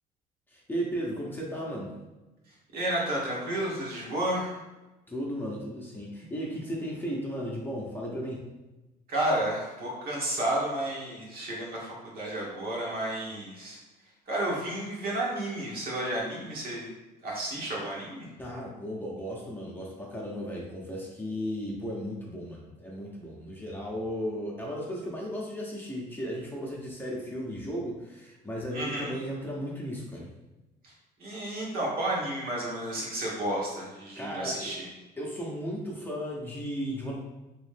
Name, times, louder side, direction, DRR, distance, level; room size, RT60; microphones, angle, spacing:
voice 1, 0.5-1.9 5.1-8.4 18.4-30.3 34.2-34.8 35.2-37.2, equal, 10° left, -3 dB, 0.8 m, -35 dB
voice 2, 2.7-4.6 9.1-13.8 14.3-16.9 17.2-18.3 28.7-29.1 30.8-30.9 31.2-34.9, right 1 dB, 60° right, -4 dB, 1.4 m, -31 dB
3.1 x 3.0 x 3.3 m, 1.1 s
cardioid pair, 110°, 17 cm